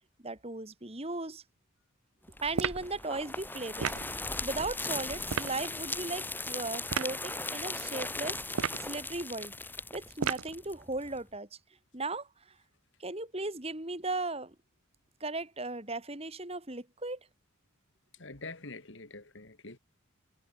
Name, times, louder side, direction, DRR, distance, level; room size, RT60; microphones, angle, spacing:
voice 1, 0.2-1.4 2.4-9.5 9.9-11.5 11.9-12.3 13.0-14.5 15.2-17.2, right 2 dB, 30° right, 2.3 m, -37 dB
sound 1, 2.4-11.2, left 2 dB, 10° left, 6.5 m, -38 dB
sound 2, 2.6-2.9 3.8-4.1 5.3-5.6 6.9-7.1 8.5-8.9 10.2-10.6, right 6 dB, 75° right, 0.7 m, -32 dB
voice 2, 18.2-19.8, left 3 dB, 55° left, 2.3 m, -45 dB
head